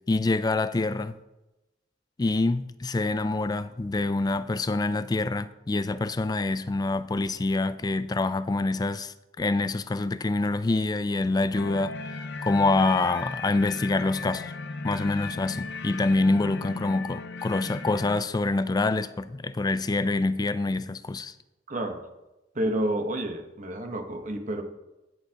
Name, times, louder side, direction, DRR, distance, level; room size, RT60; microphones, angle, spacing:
voice 1, 0.1-1.2 2.2-12.0 12.4-14.5 14.8-21.3, left 2 dB, 20° left, 0.3 m, -26 dB
sound 1, 11.5-18.2, left 3 dB, 65° left, 0.7 m, -36 dB
voice 2, 21.7-22.0 22.5-24.6, right 1 dB, 45° right, 1.1 m, -29 dB
17.0 x 6.5 x 2.9 m
head